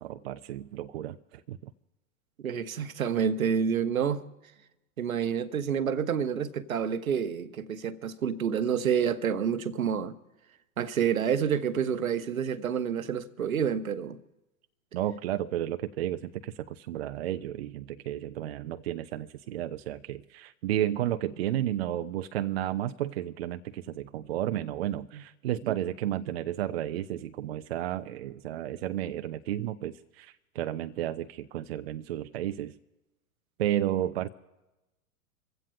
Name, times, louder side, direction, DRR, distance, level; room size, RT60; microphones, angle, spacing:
voice 1, 0.0-1.7 14.9-32.7 33.6-34.3, right 12 dB, 45° right, 0.6 m, -32 dB
voice 2, 2.4-4.3 5.0-10.1 10.8-14.2 25.6-25.7, right 7 dB, 70° right, 1.0 m, -28 dB
27.0 x 15.5 x 2.2 m
figure-of-eight pair, 100°, 44 cm